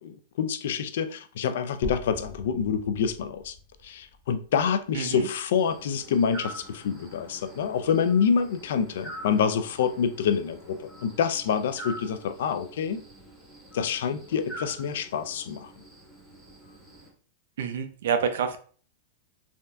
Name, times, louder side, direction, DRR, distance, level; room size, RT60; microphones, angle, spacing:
voice 1, 0.0-3.5 3.8-13.0 13.7-15.7, left 7 dB, 70° left, 0.3 m, -27 dB
sound 1, 1.8-5.8, left 1 dB, 30° left, 0.6 m, -43 dB
voice 2, 4.9-5.3 17.6-18.6, right 7 dB, 75° right, 0.4 m, -27 dB
sound 2, 5.6-17.1, right 1 dB, 5° right, 1.0 m, -45 dB
3.4 x 2.5 x 2.2 m
supercardioid pair, 160°, 0 cm